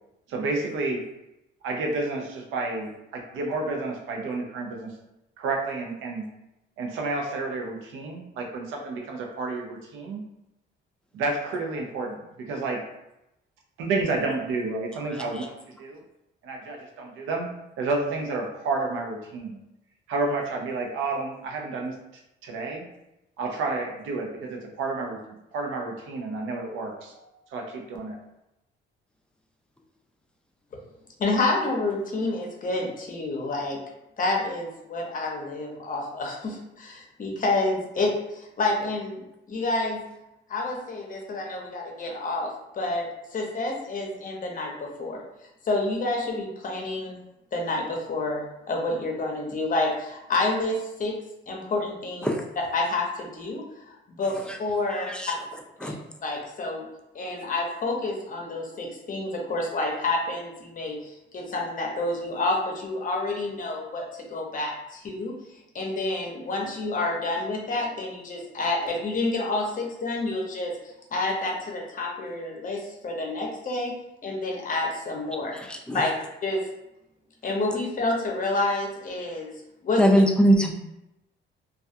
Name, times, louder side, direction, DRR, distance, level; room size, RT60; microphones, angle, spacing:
voice 1, 0.3-1.0 1.6-4.9 5.4-6.3 6.8-10.2 11.1-12.8 13.8-16.0 16.4-17.5 17.8-19.6 20.1-22.0 22.4-22.9 23.4-25.2 25.5-28.2, right 3 dB, 90° right, 1 dB, 0.5 m, -30 dB
voice 2, 31.2-33.8 34.2-39.2 39.5-40.0 40.5-45.2 45.6-47.2 47.5-51.1 51.5-52.4 52.7-55.1 55.8-55.9 56.2-56.9 57.1-65.3 65.7-70.8 71.1-73.9 74.2-75.6 75.9-76.1 76.4-76.6 77.4-79.5 79.8-80.0, left 2 dB, 45° left, 0 dB, 0.7 m, -29 dB
voice 3, 75.7-76.0 80.0-80.7, equal, 5° left, 2 dB, 0.4 m, -20 dB
2.3 x 2.2 x 2.6 m, 0.88 s
cardioid pair, 90°, 20 cm